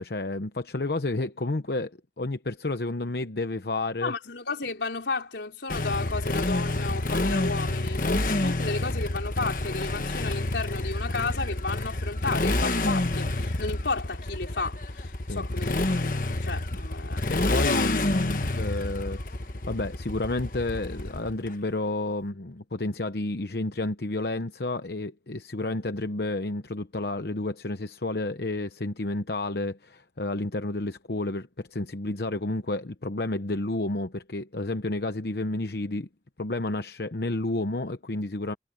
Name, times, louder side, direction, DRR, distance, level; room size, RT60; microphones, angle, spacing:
voice 1, 0.0-4.1 15.3-15.4 17.3-19.4 19.7-36.1 36.4-38.5, left 2 dB, 65° left, 0.9 m, -30 dB
voice 2, 4.0-15.8 16.0-16.2 16.4-17.5, left 3 dB, 85° left, 4.4 m, -33 dB
Motorcycle, 5.7-21.5, left 2 dB, 50° left, 1.3 m, -28 dB
head